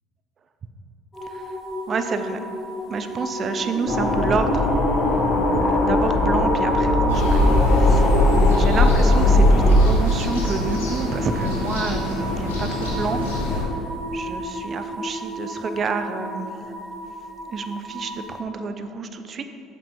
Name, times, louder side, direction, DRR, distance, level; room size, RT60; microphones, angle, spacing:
sound 1, 1.1-18.4, left 1 dB, 20° left, 1.6 m, -31 dB
voice 1, 1.9-2.4 2.9-4.7 5.6-7.4 7.7-13.2 13.5-13.7 14.1-16.5 17.5-19.4, right 5 dB, 40° right, 9 dB, 0.6 m, -29 dB
sound 2, 3.9-9.9, left 1 dB, 50° left, 1.3 m, -18 dB
sound 3, 7.1-13.6, left 2 dB, 75° left, 1.6 m, -27 dB
8.3 x 5.3 x 5.4 m, 2.5 s
figure-of-eight pair, 60°, 0 cm